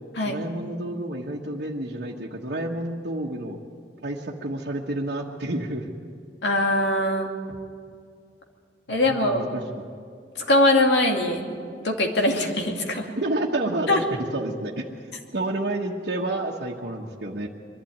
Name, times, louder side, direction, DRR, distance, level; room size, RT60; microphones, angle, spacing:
voice 1, 0.3-3.6 4.0-5.9 8.9-9.9 13.2-14.0 14.3-14.8 15.3-17.5, right 1 dB, 65° right, -5 dB, 1.4 m, -30 dB
voice 2, 6.4-7.3 8.9-9.4 10.4-13.1 13.9-14.0, left 1 dB, 85° left, 2 dB, 2.5 m, -22 dB
23.5 x 12.0 x 9.4 m, 2.3 s
head